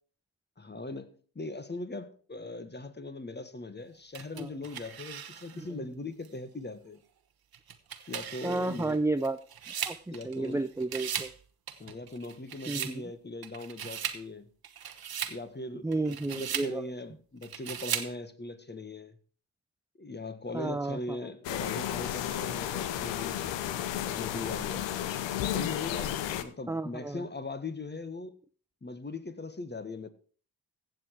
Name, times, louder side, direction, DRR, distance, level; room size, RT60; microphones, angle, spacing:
voice 1, 0.6-7.0 8.1-9.0 10.1-10.6 11.8-14.5 15.3-19.2 20.0-23.5 23.9-25.0 25.4-28.3 28.8-30.1, left 2 dB, 25° left, 1.6 m, -40 dB
sound 1, 4.1-5.7 6.2-6.3 7.5-10.5 10.8-11.4 11.7-13.0 13.4-14.2 14.6-15.4 15.9-16.7 17.4-18.1, right 8 dB, 55° right, 1.3 m, -38 dB
voice 2, 8.4-9.4 9.8-11.3 12.7-13.0 15.8-16.9 20.5-21.2 26.7-27.2, right 2 dB, 5° right, 0.6 m, -32 dB
sound 2, 21.4-26.4, left 11 dB, 75° left, 0.9 m, -33 dB
15.5 x 7.4 x 4.7 m
hypercardioid pair, 40°, 44 cm